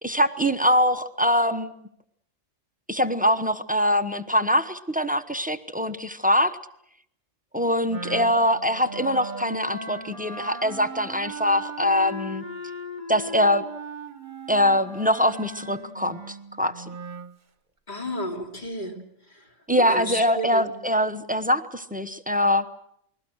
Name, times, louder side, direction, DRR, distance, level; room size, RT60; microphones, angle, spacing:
voice 1, 0.0-1.7 2.9-6.6 7.5-12.4 13.1-13.6 14.5-16.8 19.7-22.7, equal, 10° right, 10 dB, 0.9 m, -23 dB
Wind instrument woodwind instrument, 7.9-17.3, right 1 dB, 40° right, 1.2 m, -38 dB
voice 2, 17.9-18.9 19.9-20.7, equal, 40° left, 1 dB, 3.1 m, -32 dB
29.0 x 21.0 x 6.4 m, 0.73 s
omnidirectional pair, 1.3 m